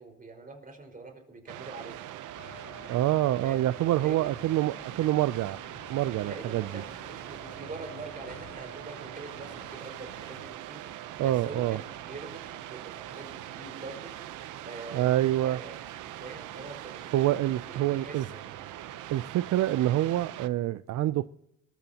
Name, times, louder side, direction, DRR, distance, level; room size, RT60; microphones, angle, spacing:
voice 1, 0.0-2.0 3.4-3.7 4.0-4.3 6.2-10.8 11.2-14.1 14.6-15.1 15.4-15.8 16.2-17.2 17.7-18.2, right 3 dB, 30° right, 5.0 m, -44 dB
sound 1, 1.5-20.5, right 12 dB, 90° right, 0.9 m, -42 dB
sound 2, 2.4-10.5, left 5 dB, 65° left, 3.5 m, -52 dB
voice 2, 2.9-5.6 5.9-6.8 11.2-11.8 14.9-15.6 17.1-18.3 19.1-21.3, right 14 dB, 65° right, 0.5 m, -26 dB
27.0 x 14.5 x 2.9 m
cardioid pair, 90°, 30 cm